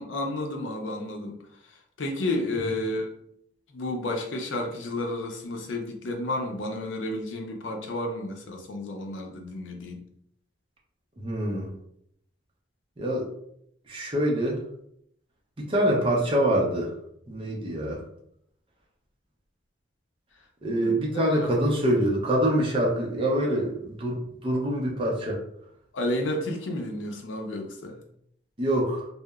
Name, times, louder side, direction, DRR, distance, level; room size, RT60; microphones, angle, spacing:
voice 1, 0.0-1.4 2.0-3.1 3.7-10.0 20.7-21.0 21.3-21.5 25.9-28.0, left 1 dB, 85° left, 3 dB, 0.5 m, -31 dB
voice 2, 11.2-11.7 13.0-13.3 13.9-14.6 15.6-16.9 17.3-18.0 20.6-25.4 28.6-29.1, right 1 dB, 30° right, -2 dB, 0.5 m, -25 dB
2.8 x 2.0 x 2.3 m, 0.72 s
head